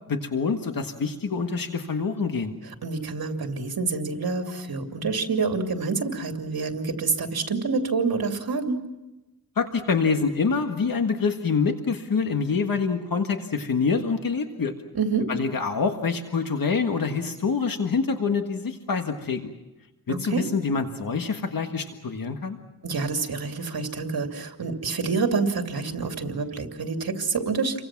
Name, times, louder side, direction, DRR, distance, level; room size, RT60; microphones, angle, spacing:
voice 1, 0.1-2.5 9.5-14.7 15.3-19.5 20.1-22.6, left 5 dB, 65° left, 5 dB, 1.7 m, -26 dB
voice 2, 2.8-8.8 14.9-15.3 20.1-20.4 22.8-27.8, right 4 dB, 70° right, 4 dB, 2.7 m, -27 dB
29.5 x 24.0 x 6.0 m, 1.1 s
wide cardioid pair, 110°, 37 cm